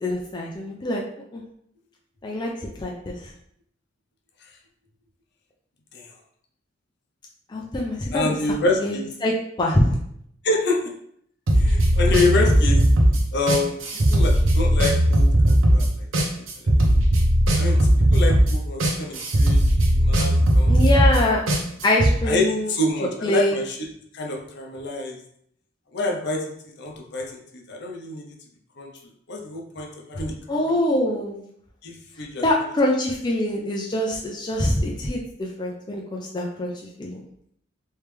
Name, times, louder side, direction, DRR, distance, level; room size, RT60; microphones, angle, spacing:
voice 1, 0.0-1.0 1.3-1.4 2.2-2.5 2.8-3.1 7.5-8.3 8.8-9.3 9.6-9.9 20.7-21.4 21.8-22.7 23.2-23.6 30.5-31.4 32.4-36.7 37.0-37.2, left 1 dB, 20° left, -2 dB, 0.4 m, -24 dB
voice 2, 8.1-9.1 10.4-10.8 11.6-12.8 13.3-16.1 16.6-16.8 17.6-19.6 19.9-20.9 22.2-23.9 24.1-25.2 25.9-28.3 28.8-28.9 29.3-30.8 31.8-32.5, left 2 dB, 55° left, 1 dB, 0.6 m, -27 dB
sound 1, 11.5-22.1, right 1 dB, 75° right, 0.8 m, -18 dB
3.3 x 3.2 x 3.3 m, 0.69 s
head